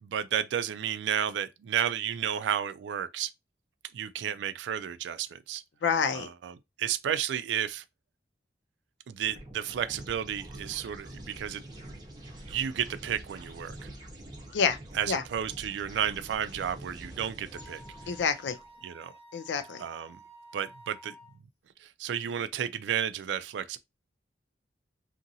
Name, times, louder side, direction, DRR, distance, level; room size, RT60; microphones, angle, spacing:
voice 1, 0.0-3.3 3.9-5.6 6.1-7.8 9.1-11.6 12.5-13.9 14.9-17.8 18.8-19.1 19.8-20.2 20.5-21.1 21.8-23.8, right 9 dB, 80° right, 0.3 m, -32 dB
voice 2, 5.8-6.3 14.5-14.8 15.1-15.2 18.1-18.6 19.3-19.8, left 6 dB, 80° left, 0.4 m, -27 dB
sound 1, 9.2-18.7, right 1 dB, 25° right, 0.7 m, -46 dB
Wind instrument woodwind instrument, 17.5-21.4, right 1 dB, 35° left, 0.7 m, -52 dB
2.8 x 2.6 x 2.6 m
head